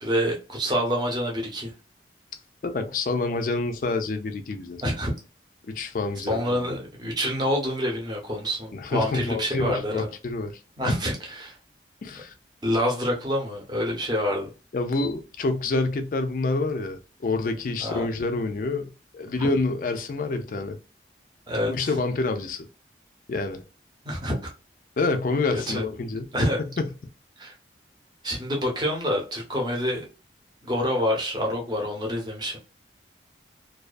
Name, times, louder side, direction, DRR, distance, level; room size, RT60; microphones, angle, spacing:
voice 1, 0.0-1.7 4.8-5.1 6.3-10.1 10.8-11.5 12.6-14.5 17.8-18.1 19.4-19.5 21.5-21.9 24.0-24.5 25.7-25.8 26.3-26.6 27.4-27.5 28.2-30.0 30.6-32.6, equal, 25° right, 0.7 m, -27 dB
voice 2, 2.6-4.8 5.7-6.7 8.7-10.5 12.0-12.3 14.7-20.8 21.7-22.6 23.3-23.6 25.0-26.3 26.8-26.9, left 3 dB, 45° left, 0.3 m, -27 dB
2.3 x 2.3 x 2.4 m
head